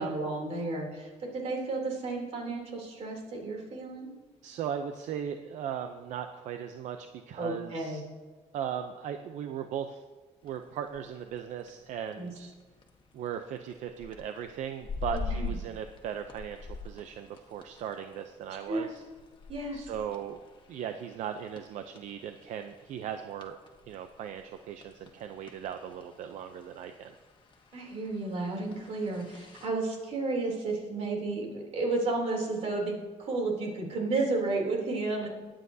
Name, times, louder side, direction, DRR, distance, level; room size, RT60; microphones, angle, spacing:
voice 1, 0.0-4.1 7.4-8.0 12.2-12.3 15.3-15.5 18.7-18.9 19.5-19.9 27.7-35.3, right 3 dB, 60° right, -1 dB, 3.1 m, -32 dB
voice 2, 4.4-8.0 8.5-10.0 10.4-12.5 13.1-19.0 19.7-20.4 20.7-23.6 23.9-27.1, right 8 dB, 85° right, 7 dB, 0.6 m, -38 dB
sound 1, 10.4-29.7, left 4 dB, 40° left, 1.3 m, -45 dB
21.5 x 8.9 x 2.7 m, 1.4 s
cardioid pair, 130°, 12 cm